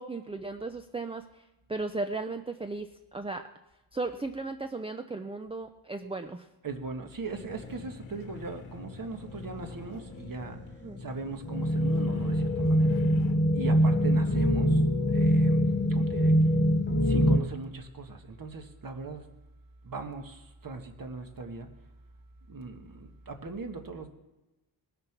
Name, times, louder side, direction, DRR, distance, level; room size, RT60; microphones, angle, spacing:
voice 1, 0.0-1.4 1.7-3.4 3.9-6.5 10.8-11.0, right 3 dB, 15° right, 7 dB, 0.4 m, -36 dB
voice 2, 6.6-10.6 11.0-13.0 13.5-14.8 15.1-16.3 17.0-19.3 19.8-21.7 22.5-24.1, right 3 dB, 45° right, 5 dB, 1.5 m, -39 dB
sound 1, 7.4-17.4, equal, 25° left, 0.8 m, -25 dB
sound 2, 7.6-10.8 11.4-13.3, left 5 dB, 75° left, 1.3 m, -51 dB
20.0 x 6.8 x 6.0 m, 1.0 s
wide cardioid pair, 145°, 47 cm